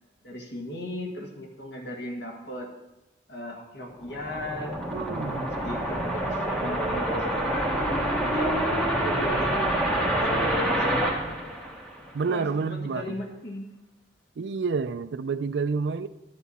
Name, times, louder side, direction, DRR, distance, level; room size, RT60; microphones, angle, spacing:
voice 1, 0.2-2.7 3.3-4.8 5.4-8.5 8.9-9.7 10.2-11.4 12.2-13.7, equal, 85° left, 1 dB, 1.8 m, -36 dB
sound 1, 3.9-12.2, right 1 dB, 5° left, 1.6 m, -27 dB
voice 2, 4.9-5.5 12.1-13.2 14.4-16.1, right 5 dB, 75° right, 13 dB, 0.4 m, -29 dB
10.5 x 9.0 x 4.2 m, 0.98 s
head